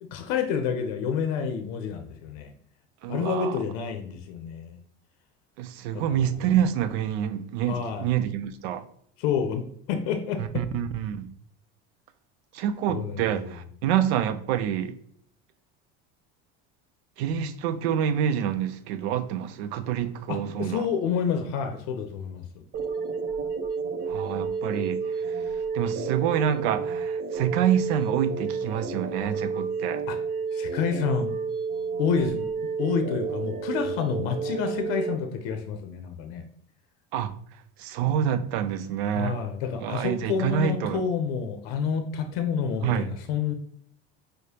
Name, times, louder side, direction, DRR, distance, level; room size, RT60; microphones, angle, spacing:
voice 1, 0.0-2.5 3.1-4.8 5.9-6.5 7.7-8.1 9.2-10.6 12.9-13.5 20.3-22.4 30.1-30.2 30.5-31.3 32.0-32.4 32.8-36.4 39.1-43.5, left 6 dB, 75° left, 0.6 m, -29 dB
voice 2, 3.0-3.6 5.6-8.8 10.4-11.3 12.5-14.9 17.2-20.9 24.1-25.4 25.7-30.0 37.1-37.3 37.8-39.4 39.8-41.0 42.8-43.1, right 9 dB, 90° right, 0.5 m, -27 dB
sound 1, 22.7-35.1, right 5 dB, 50° right, 0.7 m, -30 dB
4.8 x 2.1 x 2.7 m
supercardioid pair, 110°, 31 cm